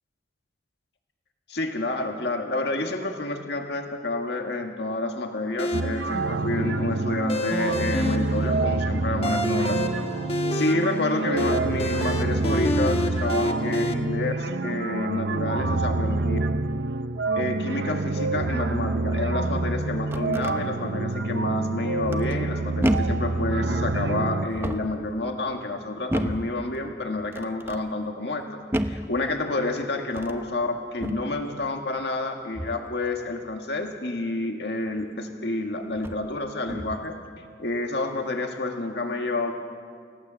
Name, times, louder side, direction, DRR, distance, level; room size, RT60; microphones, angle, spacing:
voice 1, 1.5-9.8 10.5-16.4 17.3-28.4 28.8-37.2 37.6-39.5, left 2 dB, 70° left, 3 dB, 1.8 m, -29 dB
sound 1, 5.6-13.9, left 1 dB, 30° left, 1.3 m, -29 dB
sound 2, 5.7-24.5, right 2 dB, 80° right, 0.7 m, -27 dB
sound 3, 19.8-20.6 22.1-22.5 22.8-23.3 24.4-25.0 26.1-26.5 27.3-27.8 28.7-29.1 30.1-30.4 31.0-31.3 32.5-32.9 35.0-35.1 35.9-36.3 36.7-37.1, equal, 15° right, 0.9 m, -30 dB
29.0 x 17.0 x 7.6 m, 2.1 s
head